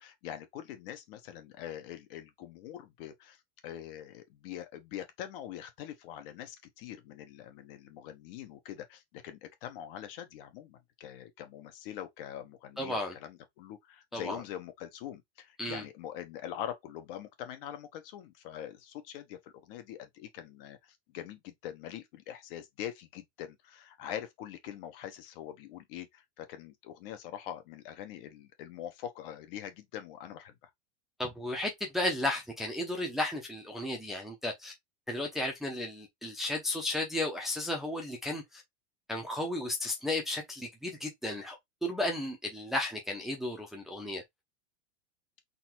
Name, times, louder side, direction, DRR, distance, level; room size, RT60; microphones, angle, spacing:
voice 1, 0.0-30.7, left 11 dB, 50° left, 1.2 m, -43 dB
voice 2, 12.8-13.1 14.1-14.4 15.6-15.8 31.2-34.7 35.1-38.6 39.1-44.2, left 1 dB, ahead, 0.8 m, -34 dB
4.0 x 2.9 x 4.5 m
supercardioid pair, 165°, 35 cm